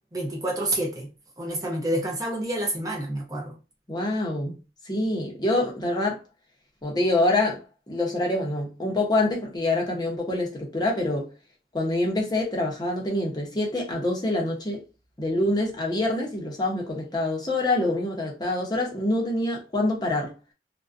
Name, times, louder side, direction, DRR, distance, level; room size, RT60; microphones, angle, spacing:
voice 1, 0.1-1.1 1.4-3.6, right 1 dB, 20° right, 0.5 m, -28 dB
voice 2, 3.9-4.6 4.8-6.2 6.8-11.3 11.7-14.8 15.2-20.3, left 2 dB, 25° left, 0.6 m, -26 dB
2.5 x 2.1 x 2.3 m
head